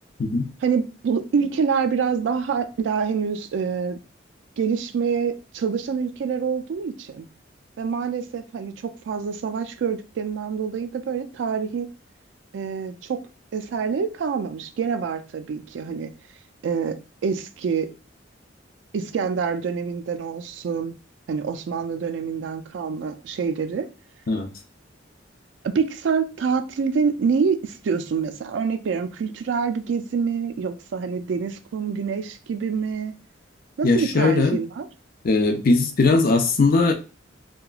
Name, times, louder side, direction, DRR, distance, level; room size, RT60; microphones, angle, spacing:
voice 1, 0.6-4.0 4.6-7.3 7.8-11.9 12.5-13.2 13.5-16.1 16.6-17.9 18.9-20.9 21.3-23.9 25.6-33.1 33.8-34.9, right 6 dB, 70° right, 0.3 m, -26 dB
voice 2, 33.8-34.6 35.2-36.9, left 3 dB, 50° left, 0.5 m, -19 dB
2.9 x 2.3 x 2.3 m
head